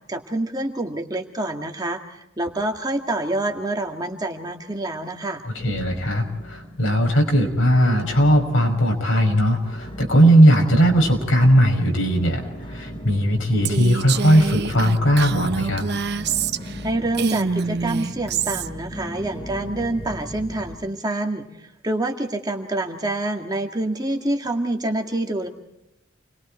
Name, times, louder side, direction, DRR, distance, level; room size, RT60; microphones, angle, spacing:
voice 1, 0.1-5.4 16.8-25.5, right 2 dB, 20° right, 2 dB, 2.1 m, -27 dB
sound 1, 2.4-3.3 3.6-4.2 4.7-4.8 5.6-20.7, equal, 30° left, 3.8 m, -37 dB
voice 2, 5.4-15.9, equal, 70° left, 3 dB, 5.9 m, -18 dB
Female speech woman speaking, 13.7-16.8 17.1-18.7, right 5 dB, 55° right, 0.9 m, -26 dB
29.5 x 22.0 x 4.5 m, 0.87 s
head